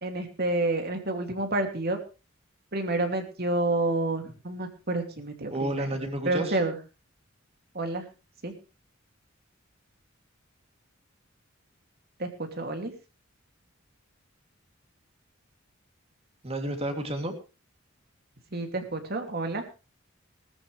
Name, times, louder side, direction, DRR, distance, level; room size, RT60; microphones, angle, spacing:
voice 1, 0.0-2.0 2.7-5.9 6.2-6.8 7.7-8.0 8.4-8.5 12.2-12.9 18.5-19.6, right 2 dB, 50° right, 5 dB, 2.7 m, -29 dB
voice 2, 5.5-6.6 16.4-17.3, right 1 dB, 30° right, 5 dB, 3.0 m, -31 dB
19.5 x 13.5 x 3.4 m, 0.32 s
head